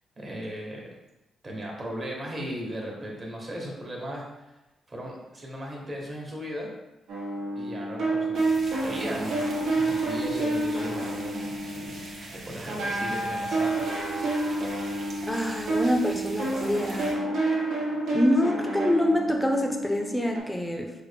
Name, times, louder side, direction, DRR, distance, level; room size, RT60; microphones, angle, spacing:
voice 1, 0.2-0.9 1.4-4.2 4.9-6.7 7.5-13.8, equal, 35° right, -2 dB, 1.0 m, -37 dB
sound 1, 7.1-12.3 12.7-20.4, right 2 dB, 85° right, 1.0 m, -29 dB
sound 2, 8.3-17.1, right 2 dB, 55° right, 0.8 m, -44 dB
voice 2, 15.2-17.2 18.1-20.9, left 1 dB, 10° left, 3 dB, 0.5 m, -26 dB
5.0 x 2.1 x 3.3 m, 1.0 s
cardioid pair, 105°, 0 cm